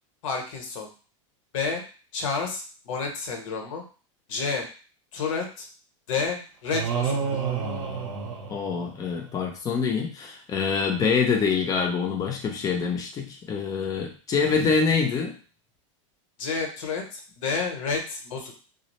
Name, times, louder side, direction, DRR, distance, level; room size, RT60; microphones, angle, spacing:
voice 1, 0.2-0.9 1.5-1.8 2.1-3.8 4.3-4.7 5.1-5.7 6.1-7.4 14.4-15.0 16.4-18.6, left 4 dB, 75° left, 2 dB, 0.8 m, -30 dB
sound 1, 6.7-9.2, right 6 dB, 70° right, 0.7 m, -29 dB
voice 2, 8.5-15.3, left 5 dB, 20° left, 2 dB, 0.5 m, -25 dB
2.4 x 2.0 x 2.9 m, 0.37 s
supercardioid pair, 130°, 17 cm